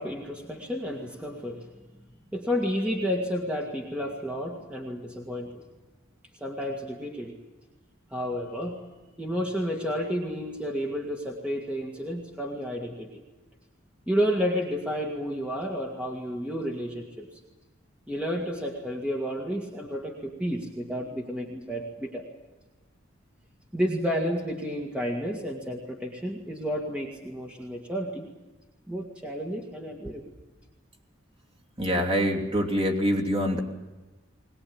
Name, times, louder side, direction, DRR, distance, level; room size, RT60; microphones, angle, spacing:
voice 1, 0.0-1.7 2.3-5.6 6.4-7.4 8.1-8.9 9.2-13.2 14.1-17.4 18.1-22.3 23.7-28.3 28.9-30.2, equal, 5° right, -1 dB, 2.0 m, -31 dB
voice 2, 31.8-33.6, equal, 25° right, 1 dB, 3.0 m, -25 dB
21.5 x 20.5 x 8.8 m, 1.2 s
head